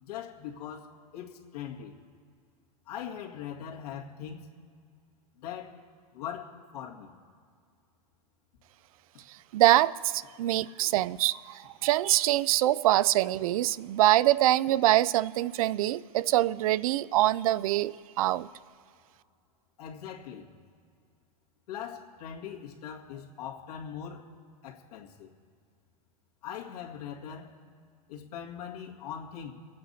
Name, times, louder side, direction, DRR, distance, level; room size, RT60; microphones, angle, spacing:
voice 1, 0.0-2.0 2.9-4.5 5.4-5.8 6.1-7.2 19.8-20.5 21.7-24.3 24.6-25.3 26.4-27.6 28.1-29.5, left 8 dB, 70° left, 2.0 m, -41 dB
voice 2, 9.3-18.5, right 15 dB, 60° right, 0.4 m, -24 dB
24.0 x 8.6 x 4.2 m
supercardioid pair, 155°, 20 cm